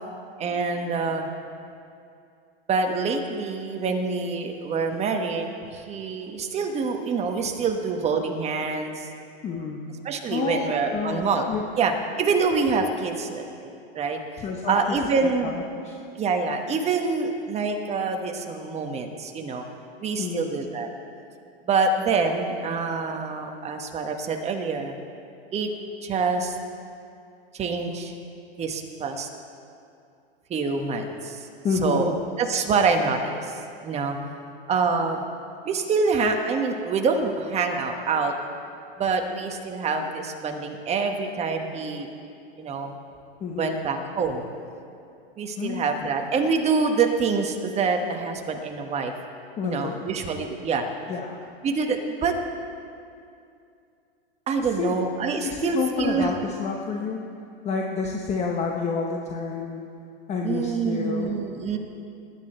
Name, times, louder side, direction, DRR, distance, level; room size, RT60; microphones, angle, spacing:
voice 1, 0.4-1.3 2.7-9.1 10.0-11.5 11.8-11.9 12.2-14.2 14.7-15.6 16.2-19.6 20.0-20.9 21.6-24.9 25.5-25.7 26.0-26.6 27.5-28.1 28.6-29.3 30.5-31.5 31.8-34.2 34.7-35.2 35.6-38.3 39.0-42.1 42.6-43.0 43.6-44.4 45.4-49.1 49.6-50.9 51.6-52.4 54.5-56.3 60.4-61.8, right 4 dB, 20° right, 4 dB, 1.2 m, -26 dB
voice 2, 9.4-9.9 10.3-11.6 14.4-16.0 20.2-20.5 31.6-32.2 43.4-43.8 45.6-46.1 49.6-50.0 51.1-51.4 54.6-55.0 55.4-57.2 57.6-59.8 60.3-61.4, left 4 dB, 20° left, 1 dB, 1.0 m, -29 dB
19.5 x 10.0 x 4.4 m, 2.5 s
hypercardioid pair, 130°, 30 cm